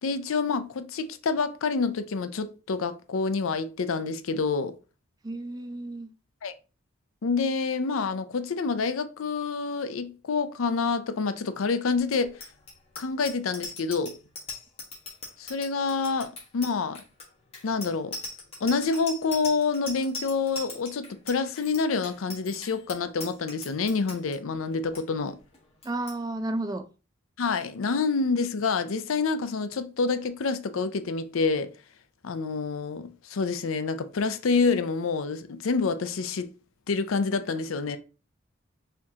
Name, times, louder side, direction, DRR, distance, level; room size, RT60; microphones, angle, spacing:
voice 1, 0.0-4.7 6.4-6.5 7.2-12.4 13.0-14.2 15.4-17.0 17.6-18.2 18.6-25.4 27.4-31.7 32.2-36.5 36.9-38.0, left 4 dB, 85° left, 0.5 m, -27 dB
voice 2, 5.2-6.1 25.8-26.8, right 2 dB, 20° right, 0.3 m, -32 dB
Bicycle bell, 12.0-24.4 24.7-25.0 25.3-25.6 25.8-26.2, left 3 dB, 30° left, 1.3 m, -39 dB
4.4 x 3.6 x 2.8 m
head